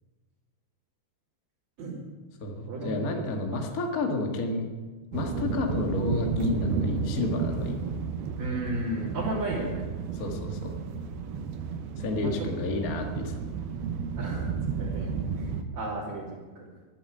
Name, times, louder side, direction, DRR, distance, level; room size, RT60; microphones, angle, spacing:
voice 1, 2.4-4.6 5.1-7.8 10.1-10.8 12.0-13.3, left 2 dB, 80° left, 2 dB, 0.8 m, -30 dB
sound 1, 5.1-15.6, right 5 dB, 75° right, 2.8 m, -32 dB
voice 2, 8.4-9.8 12.1-12.4 14.2-15.1 15.7-16.7, right 1 dB, 45° right, -10 dB, 4.0 m, -34 dB
12.0 x 10.0 x 9.3 m, 1.4 s
omnidirectional pair, 4.8 m